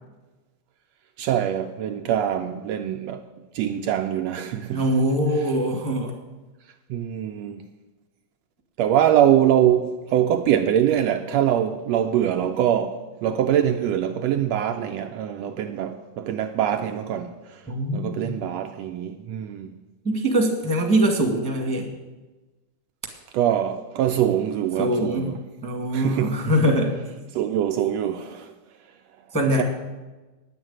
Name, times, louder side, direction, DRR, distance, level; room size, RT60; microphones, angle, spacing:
voice 1, 1.2-3.2 3.5-4.8 6.9-7.6 8.8-17.6 17.9-19.7 23.3-25.4 25.9-26.3 27.3-28.5 29.6-29.7, right 10 dB, 80° right, 1.6 m, -23 dB
voice 2, 4.7-6.1 17.7-18.3 20.0-21.9 24.8-25.3 25.6-26.9 29.3-29.6, right 1 dB, 5° left, 1.1 m, -22 dB
10.0 x 8.0 x 8.7 m
omnidirectional pair, 3.3 m